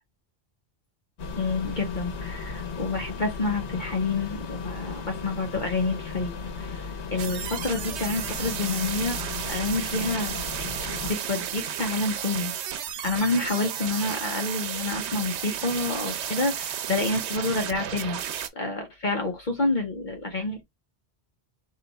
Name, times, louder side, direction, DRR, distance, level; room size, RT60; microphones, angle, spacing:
sound 1, 1.2-11.1, left 5 dB, 85° left, 1.2 m, -36 dB
voice 1, 1.4-9.2 9.5-10.7 11.0-18.2 18.5-20.6, left 3 dB, 50° left, 1.0 m, -28 dB
sound 2, 7.2-18.5, right 9 dB, 85° right, 0.9 m, -33 dB
3.3 x 2.8 x 3.9 m
omnidirectional pair, 1.1 m